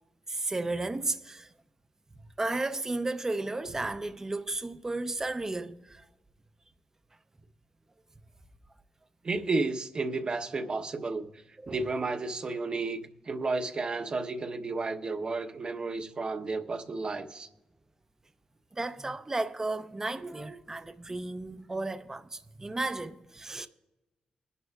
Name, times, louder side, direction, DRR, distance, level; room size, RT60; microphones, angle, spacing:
voice 1, 0.3-1.5 2.4-6.0 11.6-11.8 12.7-12.8 18.7-23.7, right 2 dB, 20° right, 0.7 m, -34 dB
voice 2, 9.2-11.3 11.7-13.0 13.2-17.5, right 3 dB, 45° right, 1.0 m, -32 dB
21.5 x 11.0 x 2.4 m
cardioid pair, 85°, 2 cm